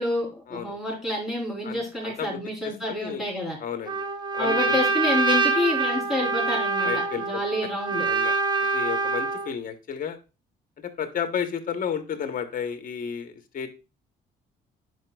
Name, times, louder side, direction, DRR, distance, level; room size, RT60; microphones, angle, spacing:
voice 1, 0.0-3.6 4.4-8.1, left 1 dB, ahead, -3 dB, 3.6 m, -28 dB
voice 2, 1.6-3.3 3.6-4.0 4.3-4.8 6.8-7.4 8.0-8.3 8.7-10.2 10.8-13.7, left 7 dB, 45° left, 7 dB, 1.0 m, -32 dB
Trumpet, 3.9-9.5, right 3 dB, 25° right, 0.8 m, -25 dB
9.4 x 4.9 x 2.3 m, 0.30 s
cardioid pair, 125°, 19 cm